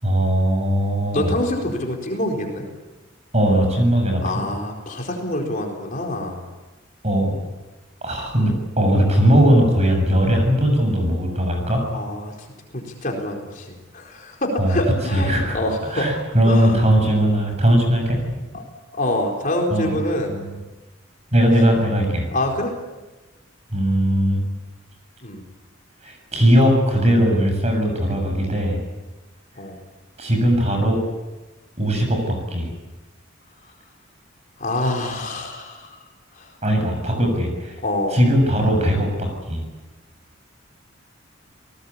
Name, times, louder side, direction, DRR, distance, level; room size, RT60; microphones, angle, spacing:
voice 1, 0.0-1.4 3.3-4.2 7.0-7.3 8.0-11.8 14.6-14.8 15.1-15.6 15.9-18.2 19.7-20.0 20.3-20.5 21.3-22.3 23.7-24.4 26.0-28.8 30.2-31.0 31.8-32.7 36.6-37.8 38.1-39.6, equal, 30° right, 4 dB, 7.2 m, -19 dB
voice 2, 1.1-2.6 4.2-6.4 11.9-12.3 12.7-16.1 16.4-16.8 18.5-18.6 18.9-20.4 22.3-22.7 25.2-25.4 29.6-29.8 34.6-36.0 36.3-36.5 37.8-38.2, left 1 dB, 40° left, 1 dB, 4.2 m, -26 dB
28.5 x 19.5 x 8.6 m, 1.2 s
head